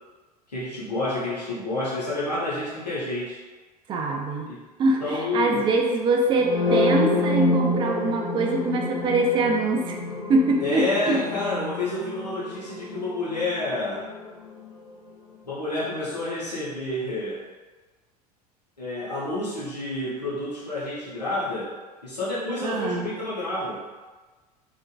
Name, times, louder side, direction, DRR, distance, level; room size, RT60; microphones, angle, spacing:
voice 1, 0.5-3.4 4.5-4.6 5.0-5.8 10.6-14.1 15.4-17.4 18.8-21.8 22.0-23.8, left 2 dB, 85° left, -8 dB, 0.8 m, -29 dB
voice 2, 3.9-9.9 10.3-11.2 22.6-23.1, right 2 dB, 25° right, 1 dB, 0.4 m, -24 dB
sound 1, 6.3-14.2, left 2 dB, 25° left, 1.1 m, -27 dB
2.9 x 2.5 x 2.2 m, 1.3 s
figure-of-eight pair, 75°, 20 cm